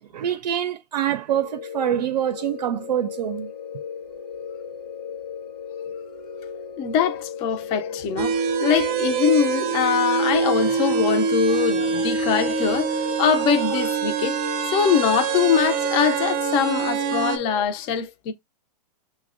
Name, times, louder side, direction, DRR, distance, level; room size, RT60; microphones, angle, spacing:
voice 1, 0.1-3.5, right 10 dB, 90° right, 0.5 m, -25 dB
sound 1, 1.3-17.7, left 7 dB, 80° left, 0.9 m, -36 dB
voice 2, 6.8-14.4 14.7-18.3, left 7 dB, 25° left, 0.4 m, -23 dB
sound 2, 8.2-17.4, right 6 dB, 30° right, 0.5 m, -25 dB
5.9 x 2.1 x 2.4 m
hypercardioid pair, 140°, 21 cm